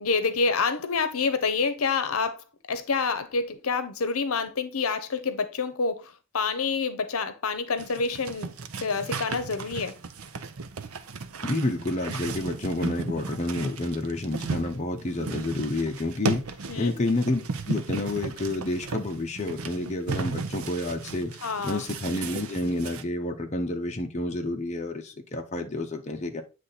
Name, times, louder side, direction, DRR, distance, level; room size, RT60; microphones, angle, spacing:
voice 1, 0.0-10.0 16.7-16.9 21.4-21.8, left 4 dB, 85° left, 0.8 m, -28 dB
sound 1, 7.8-23.0, right 4 dB, 85° right, 0.7 m, -35 dB
voice 2, 11.4-16.4 16.8-17.4 17.6-21.3 21.6-26.4, left 2 dB, 30° left, 0.8 m, -29 dB
8.3 x 3.3 x 4.0 m
head